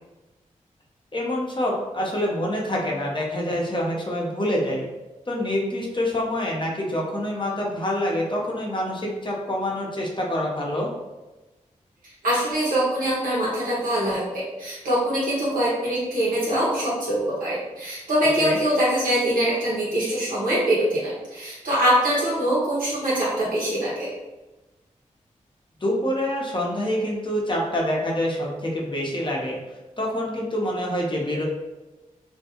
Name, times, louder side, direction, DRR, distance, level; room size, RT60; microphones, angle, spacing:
voice 1, 1.1-4.9 5.3-10.9 18.4-18.6 25.8-29.6 30.0-31.4, left 1 dB, 35° left, -2 dB, 0.8 m, -26 dB
voice 2, 12.2-24.1, right 1 dB, 90° right, -7 dB, 1.1 m, -23 dB
2.6 x 2.3 x 2.9 m, 1.1 s
cardioid pair, 40°, 14 cm